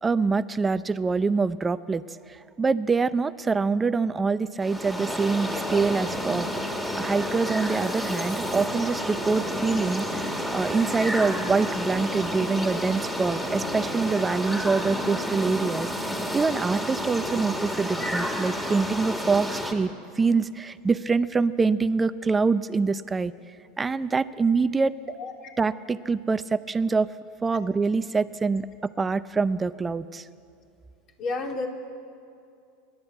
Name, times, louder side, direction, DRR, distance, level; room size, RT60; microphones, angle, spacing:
voice 1, 0.0-2.0 2.3-6.5 7.0-19.9 20.2-23.3 23.8-24.9 25.6-27.1 27.4-30.2, right 4 dB, 15° right, 14 dB, 0.6 m, -25 dB
sound 1, 4.6-19.7, equal, 5° left, 2.4 m, -30 dB
voice 2, 31.2-31.7, left 3 dB, 40° left, 2 dB, 3.2 m, -30 dB
29.0 x 12.0 x 8.1 m, 2.5 s
supercardioid pair, 120°, 0 cm